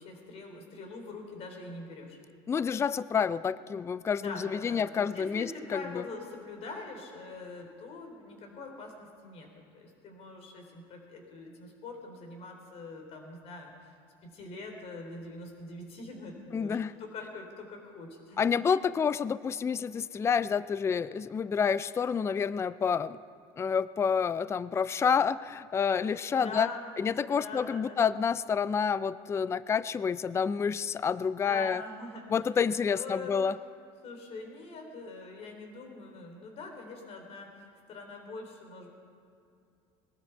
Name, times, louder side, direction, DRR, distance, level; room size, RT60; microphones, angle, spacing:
voice 1, 0.0-2.2 4.2-13.9 14.2-18.7 26.0-28.1 31.4-32.5 32.9-33.5 34.0-38.9, left 3 dB, 55° left, 3 dB, 3.6 m, -43 dB
voice 2, 2.5-6.0 16.5-16.9 18.4-23.2 23.6-26.7 27.0-31.8 32.3-33.6, left 6 dB, 20° left, 17 dB, 0.4 m, -29 dB
21.5 x 13.0 x 4.6 m, 2.4 s
supercardioid pair, 105°, 13 cm